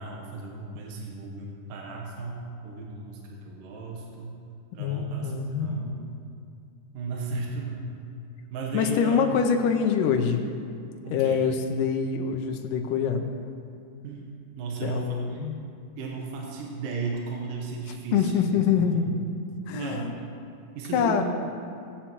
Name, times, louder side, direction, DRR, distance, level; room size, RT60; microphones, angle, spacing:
voice 1, 0.0-4.4 4.7-6.0 6.9-8.0 8.5-9.4 11.0-11.4 14.0-14.3 14.6-15.4 16.0-18.6 18.9-19.0 19.7-20.2 20.8-21.2, right 4 dB, 80° right, -1 dB, 2.7 m, -35 dB
voice 2, 4.8-5.8 8.7-10.5 11.1-13.3 14.8-15.5 18.1-19.1 19.7-20.1 20.9-21.2, left 7 dB, 85° left, 4 dB, 2.2 m, -25 dB
18.0 x 8.7 x 3.0 m, 2.4 s
omnidirectional pair, 3.9 m